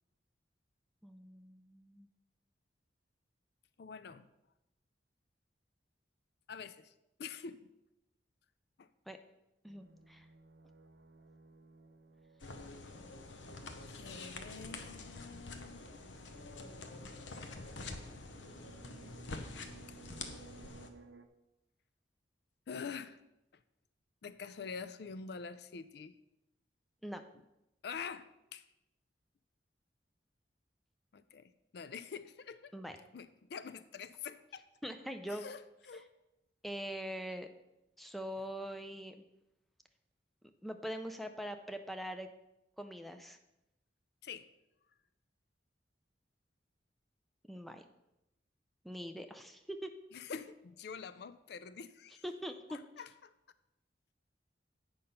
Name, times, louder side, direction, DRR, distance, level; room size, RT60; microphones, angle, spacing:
voice 1, 1.0-2.1 9.1-9.2 9.6-10.3 27.0-27.2 32.7-33.0 34.8-35.5 36.6-37.5 38.0-39.1 40.6-42.3 42.8-43.4 47.5-47.8 48.8-49.9 52.2-52.8, equal, ahead, 6 dB, 0.5 m, -43 dB
voice 2, 3.8-4.3 6.5-6.9 7.2-7.7 8.8-8.9 13.9-15.8 22.7-23.2 24.2-26.1 27.8-28.7 31.1-32.7 33.1-34.7 35.3-36.1 44.2-44.5 50.1-52.2 52.7-53.3, left 6 dB, 60° left, 13 dB, 0.4 m, -46 dB
sound 1, 9.7-21.3, right 4 dB, 65° right, 0.6 m, -60 dB
sound 2, 12.4-20.9, left 3 dB, 85° left, 0.8 m, -47 dB
8.5 x 5.4 x 5.6 m, 0.90 s
head